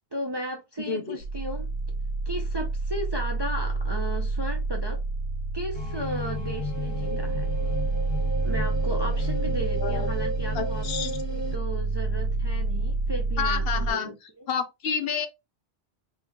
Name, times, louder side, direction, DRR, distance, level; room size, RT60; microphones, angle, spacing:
voice 1, 0.1-1.7 2.3-5.0 5.5-7.5 8.4-14.1, right 1 dB, 35° right, 0.5 m, -35 dB
voice 2, 0.8-1.2 9.8-10.1 10.5-11.1 13.4-14.2 14.5-15.3, left 6 dB, 65° left, 0.8 m, -29 dB
sound 1, 1.2-13.9, right 3 dB, 80° right, 0.9 m, -28 dB
sound 2, 5.7-11.6, left 1 dB, 25° left, 0.9 m, -34 dB
3.6 x 2.8 x 2.8 m
omnidirectional pair, 1.1 m